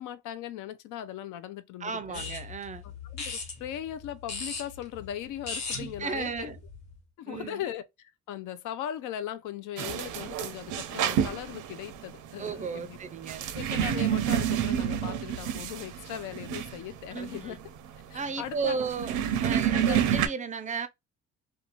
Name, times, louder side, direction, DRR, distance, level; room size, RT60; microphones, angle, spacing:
voice 1, 0.0-2.2 2.8-6.5 7.2-13.0 13.5-17.6 18.1-18.8 19.7-20.0, left 11 dB, 85° left, 0.5 m, -39 dB
voice 2, 1.8-2.8 5.8-6.6 7.3-7.6 12.4-13.5 17.1-17.6 18.1-20.9, right 5 dB, 25° right, 0.4 m, -34 dB
sound 1, 2.1-7.0, left 4 dB, 65° left, 1.1 m, -39 dB
sound 2, 9.8-20.3, right 9 dB, 85° right, 0.5 m, -29 dB
2.5 x 2.3 x 2.8 m
cardioid pair, 90°, 30 cm